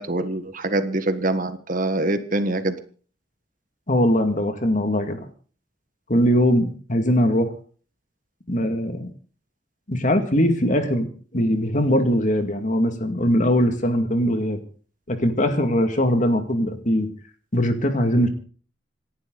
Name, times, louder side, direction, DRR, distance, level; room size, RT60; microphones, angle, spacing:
voice 1, 0.0-2.7, right 2 dB, 45° right, 10 dB, 1.5 m, -24 dB
voice 2, 3.9-5.3 6.1-7.5 8.5-9.1 9.9-11.1 11.3-14.6 15.1-17.1 17.5-18.3, equal, 45° left, 7 dB, 2.2 m, -21 dB
27.0 x 11.5 x 4.0 m, 0.41 s
head